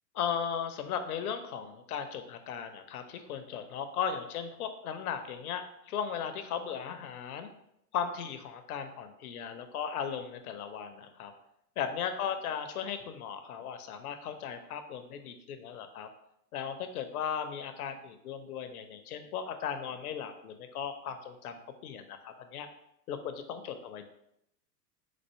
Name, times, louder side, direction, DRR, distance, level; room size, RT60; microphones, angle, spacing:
voice 1, 0.1-7.5 7.9-11.3 11.8-16.1 16.5-22.7 23.1-24.1, left 7 dB, 65° left, 8 dB, 0.7 m, -37 dB
4.1 x 2.5 x 4.6 m, 0.78 s
hypercardioid pair, 105°, 49 cm